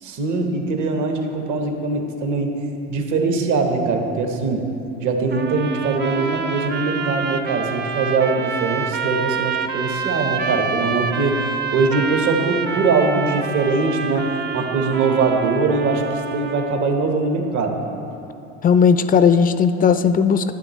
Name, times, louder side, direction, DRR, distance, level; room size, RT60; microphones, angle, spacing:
voice 1, 0.0-2.6 2.9-4.7 5.0-11.5 11.7-14.3 14.5-17.8, right 3 dB, 55° right, 4 dB, 1.2 m, -21 dB
sound 1, 5.3-16.9, right 5 dB, 30° right, 0.6 m, -27 dB
voice 2, 18.6-20.5, left 6 dB, 25° left, 11 dB, 0.3 m, -16 dB
12.0 x 8.7 x 3.1 m, 2.9 s
hypercardioid pair, 75°, 36 cm